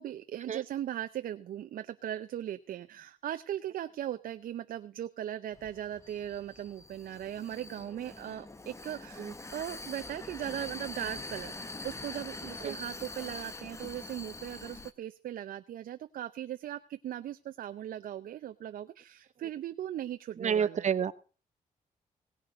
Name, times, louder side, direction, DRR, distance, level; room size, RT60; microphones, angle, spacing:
voice 1, 0.0-20.9, right 11 dB, 85° right, 10 dB, 0.6 m, -39 dB
Vehicle, 5.5-14.9, left 2 dB, 20° left, 1.1 m, -44 dB
voice 2, 20.4-21.1, right 8 dB, 55° right, 15 dB, 0.9 m, -29 dB
17.5 x 6.5 x 7.7 m, 0.37 s
cardioid pair, 95°, 14 cm